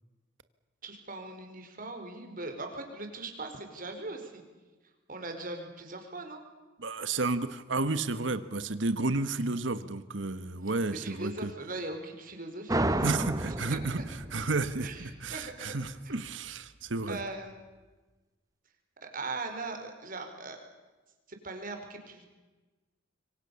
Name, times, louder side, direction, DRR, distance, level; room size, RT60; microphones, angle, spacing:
voice 1, 0.8-4.4 5.1-6.4 10.9-14.0 14.8-15.7 16.0-16.2 17.1-17.6 19.0-20.6 21.3-22.3, right 2 dB, 45° right, 5 dB, 4.7 m, -40 dB
voice 2, 6.8-11.5 13.0-14.0 14.3-17.2, right 3 dB, 75° right, 12 dB, 1.4 m, -32 dB
sound 1, 12.7-16.0, right 1 dB, 20° right, 1.0 m, -32 dB
26.0 x 24.5 x 7.1 m, 1.2 s
head